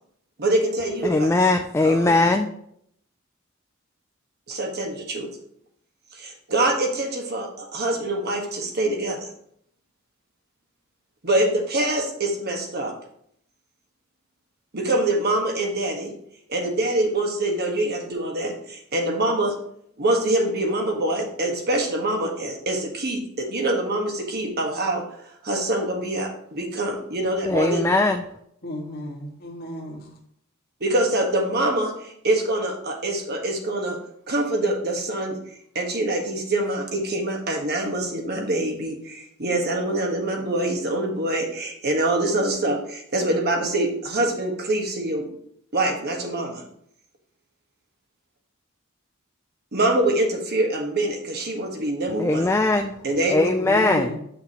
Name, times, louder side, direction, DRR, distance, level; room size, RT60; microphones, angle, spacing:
voice 1, 0.4-1.4 1.8-2.2 4.5-5.3 6.1-9.3 11.2-12.9 14.7-16.1 16.5-19.6 20.0-25.0 25.4-27.9 30.8-34.0 34.3-35.4 35.7-45.2 45.7-46.6 49.7-52.5 53.0-53.5, right 1 dB, 50° right, 1.3 m, -25 dB
voice 2, 1.0-2.5 27.5-28.2 52.2-52.9 53.3-54.1, left 2 dB, 15° left, 0.3 m, -20 dB
voice 3, 28.6-30.1 53.5-54.2, equal, 50° left, 1.5 m, -33 dB
8.1 x 5.8 x 2.9 m
head